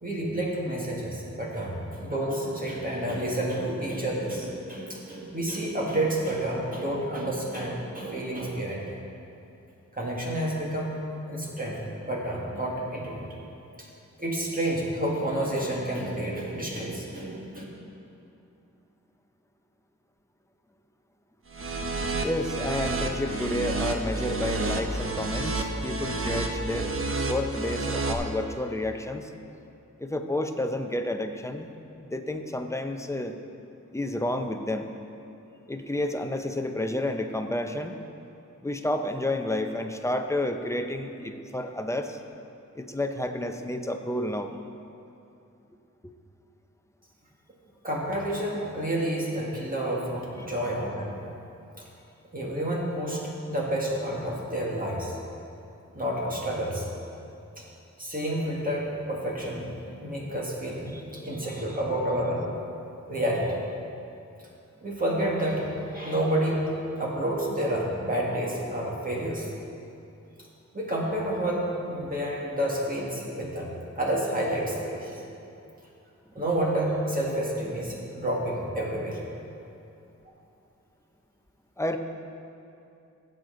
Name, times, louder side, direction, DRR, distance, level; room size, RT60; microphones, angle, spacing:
voice 1, 0.0-8.9 9.9-11.0 11.3-13.2 13.8-13.9 14.2-17.6 47.8-51.2 52.3-53.2 53.5-55.1 55.9-56.9 57.6-57.7 58.0-59.7 60.0-61.0 61.2-62.5 63.1-63.6 64.8-66.7 67.0-69.5 70.7-75.2 76.4-79.2, right 1 dB, 30° right, -4 dB, 1.9 m, -29 dB
sound 1, 21.5-28.1, right 3 dB, 45° right, 1.0 m, -30 dB
voice 2, 22.2-27.0 27.3-29.3 30.0-31.7 32.0-33.3 33.9-34.9 35.7-37.9 38.6-42.2 42.7-44.5 46.0-46.1 60.9-61.2 61.7-61.8 81.8-82.0, left 1 dB, 10° left, 5 dB, 0.6 m, -30 dB
17.0 x 8.0 x 3.9 m, 2.7 s
wide cardioid pair, 120°, 30 cm